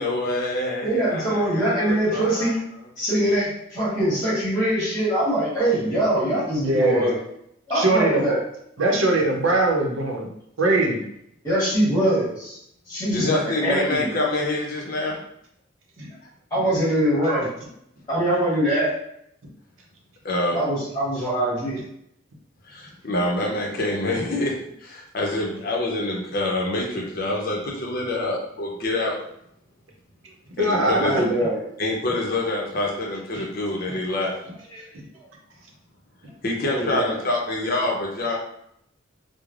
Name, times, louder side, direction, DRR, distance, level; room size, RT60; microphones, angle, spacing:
voice 1, 0.0-2.5 13.1-15.2 20.2-20.6 22.6-24.5 24.8-29.2 30.6-31.2 31.8-34.3 36.4-38.4, left 2 dB, 45° left, -1 dB, 0.6 m, -26 dB
voice 2, 0.8-2.6 3.0-7.1 7.7-8.4 11.4-12.6 12.9-14.1 16.5-17.5 18.1-18.9 20.5-21.8 31.0-31.6 34.7-34.8 36.6-37.2, right 1 dB, 15° left, -9 dB, 1.2 m, -23 dB
voice 3, 6.6-7.1 7.7-8.2 8.8-10.3 10.6-11.0 16.0-16.1 30.6-31.2 33.3-33.4 33.9-34.0 34.9-35.1, right 2 dB, 80° right, -1 dB, 0.7 m, -21 dB
3.2 x 2.0 x 2.4 m, 0.74 s
head